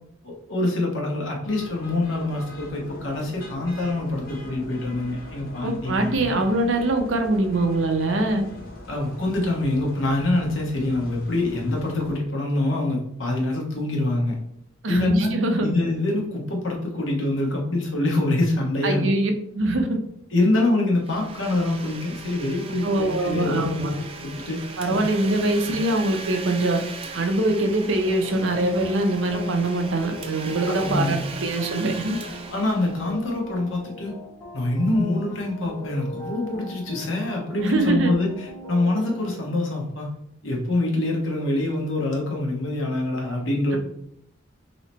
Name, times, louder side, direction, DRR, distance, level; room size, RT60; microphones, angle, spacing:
voice 1, 0.2-6.4 8.9-14.4 14.9-15.3 15.6-19.1 20.3-24.6 24.9-25.0 25.6-25.7 30.7-31.2 32.5-34.1 34.5-40.1 40.4-43.8, left 2 dB, 70° left, -1 dB, 1.2 m, -25 dB
sound 1, 1.5-12.2, left 2 dB, 45° left, 0.8 m, -42 dB
voice 2, 5.6-8.4 14.8-15.7 18.8-20.0 22.8-23.9 24.8-26.8 27.1-32.1 37.6-38.2, right 2 dB, 70° right, 5 dB, 0.6 m, -23 dB
Domestic sounds home sounds, 21.0-33.5, right 4 dB, 30° right, 0.4 m, -38 dB
sound 2, 28.0-39.3, left 1 dB, 15° left, 1.3 m, -39 dB
3.2 x 2.8 x 4.2 m, 0.74 s
head